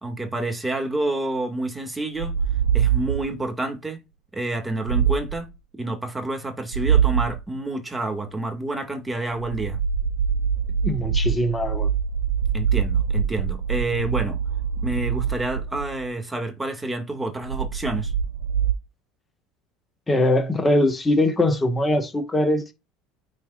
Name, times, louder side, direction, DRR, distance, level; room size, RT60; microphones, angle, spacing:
voice 1, 0.0-2.4 2.7-4.0 4.3-9.8 12.5-14.4 14.8-18.1, right 2 dB, 10° right, 2.3 m, -28 dB
sound 1, 2.2-3.4 4.9-5.4 6.7-7.4 9.3-16.1 17.4-18.7, right 7 dB, 90° right, 0.5 m, -24 dB
voice 2, 10.8-11.9 20.1-22.7, left 1 dB, 15° left, 1.9 m, -21 dB
9.4 x 4.7 x 2.6 m
hypercardioid pair, 75°, 0 cm